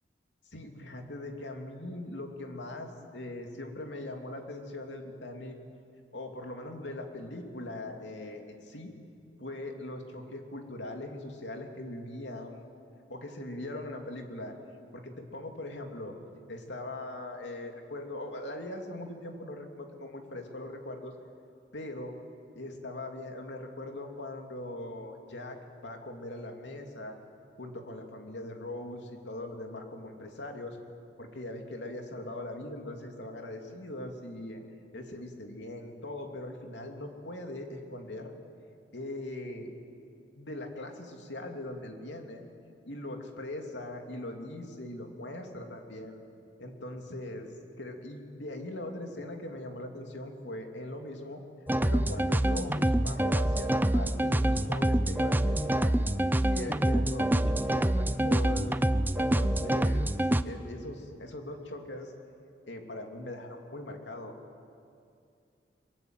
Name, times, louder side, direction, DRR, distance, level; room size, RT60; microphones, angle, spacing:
voice 1, 0.5-5.6 6.1-8.9 9.4-12.6 13.1-14.6 14.9-16.2 16.5-21.1 21.7-22.1 22.5-27.2 27.6-30.8 31.2-34.6 34.9-38.3 38.9-39.7 40.3-42.4 42.9-46.2 46.6-47.5 47.8-51.4 51.8-56.1 56.5-58.8 59.1-60.1 60.4-62.1 62.7-64.3, left 1 dB, 85° left, 3 dB, 2.8 m, -40 dB
sound 1, 51.7-60.4, right 1 dB, 10° right, 0.6 m, -26 dB
23.0 x 22.5 x 9.1 m, 2.5 s
head